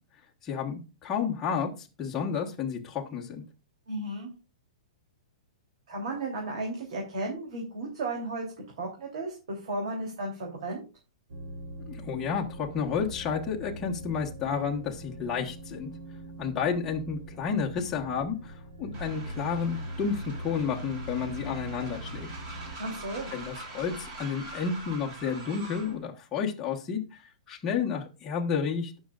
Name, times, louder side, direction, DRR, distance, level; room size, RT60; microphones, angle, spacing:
voice 1, 0.4-3.4 11.9-15.9 16.4-22.3 23.3-29.0, left 6 dB, 10° left, -1 dB, 1.2 m, -31 dB
voice 2, 3.9-4.3 5.9-8.4 8.8-10.8 22.8-23.3, right 2 dB, 55° right, 0 dB, 3.3 m, -34 dB
sound 1, 11.3-22.8, equal, 85° right, 3.4 m, -42 dB
Train, 18.9-26.0, right 2 dB, 30° right, 3.2 m, -43 dB
18.0 x 6.3 x 2.4 m, 0.31 s
hypercardioid pair, 175°, 4 cm